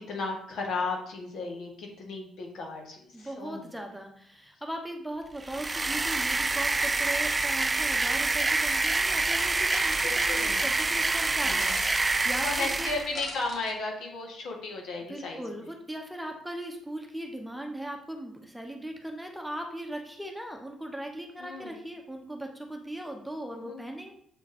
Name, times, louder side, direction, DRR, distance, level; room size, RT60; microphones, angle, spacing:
voice 1, 0.0-3.7 10.0-10.6 11.4-11.7 12.4-15.4 21.4-21.7 23.6-23.8, left 3 dB, 70° left, 1 dB, 1.7 m, -35 dB
voice 2, 3.1-12.9 15.1-24.1, right 1 dB, ahead, 3 dB, 1.1 m, -39 dB
sound 1, 5.4-13.1, right 3 dB, 20° right, 0.3 m, -27 dB
sound 2, 9.7-10.5 11.6-12.0 13.1-13.7, left 2 dB, 55° left, 1.9 m, -41 dB
7.1 x 4.0 x 4.2 m, 0.64 s
cardioid pair, 90°, 0 cm